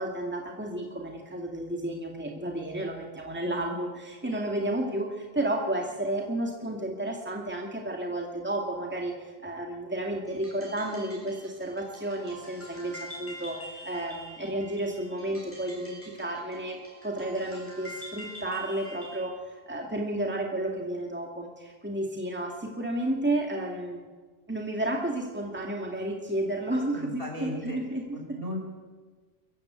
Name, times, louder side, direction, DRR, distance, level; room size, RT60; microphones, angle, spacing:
voice 1, 0.0-16.8 17.0-24.0 24.5-28.4, right 1 dB, 10° right, 0 dB, 2.3 m, -32 dB
sound 1, 10.3-19.3, equal, 10° left, 7.4 m, -46 dB
voice 2, 26.9-27.8 28.1-28.6, left 1 dB, 60° right, 0 dB, 5.6 m, -36 dB
22.5 x 14.5 x 8.2 m, 1.4 s
omnidirectional pair, 1.1 m